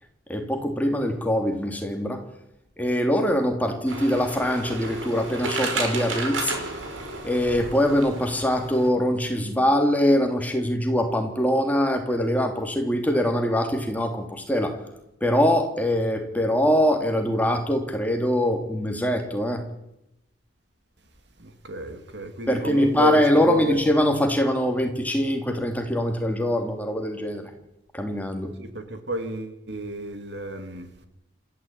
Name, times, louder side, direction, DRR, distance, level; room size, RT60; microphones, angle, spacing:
voice 1, 0.3-2.2 2.8-6.5 7.2-14.8 15.2-19.6 22.5-27.5 27.9-28.5, equal, 10° left, 3.1 m, -23 dB
sound 1, 3.9-8.9, right 3 dB, 90° right, 5.4 m, -32 dB
voice 2, 21.4-23.8 28.6-30.9, equal, 60° right, 3.1 m, -31 dB
27.5 x 15.5 x 9.1 m
head